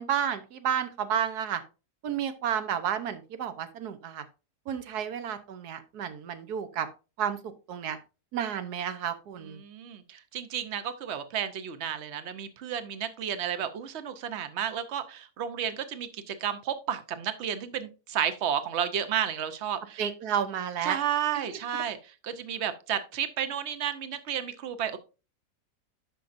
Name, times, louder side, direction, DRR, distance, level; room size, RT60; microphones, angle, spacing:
voice 1, 0.0-1.6 2.0-4.2 4.7-6.9 7.2-8.0 8.3-9.6 20.0-21.0 21.3-21.6, right 9 dB, 75° right, 10 dB, 1.4 m, -31 dB
voice 2, 9.6-20.0 20.8-25.0, right 9 dB, 55° right, 11 dB, 0.9 m, -32 dB
11.5 x 5.3 x 2.6 m, 0.31 s
omnidirectional pair, 1.7 m